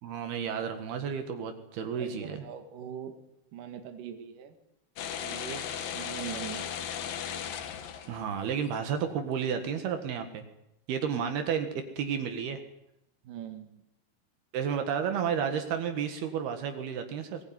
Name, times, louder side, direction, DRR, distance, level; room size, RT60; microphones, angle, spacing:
voice 1, 0.0-2.4 8.1-10.4 10.9-12.6 14.5-17.4, right 7 dB, 75° right, 7 dB, 3.6 m, -32 dB
voice 2, 1.9-3.1 3.5-4.5 5.2-6.9 13.2-13.8, right 9 dB, 60° right, 7 dB, 3.3 m, -42 dB
sound 1, 5.0-8.6, left 9 dB, 65° left, 3.1 m, -36 dB
22.0 x 19.0 x 9.6 m, 0.85 s
omnidirectional pair, 4.6 m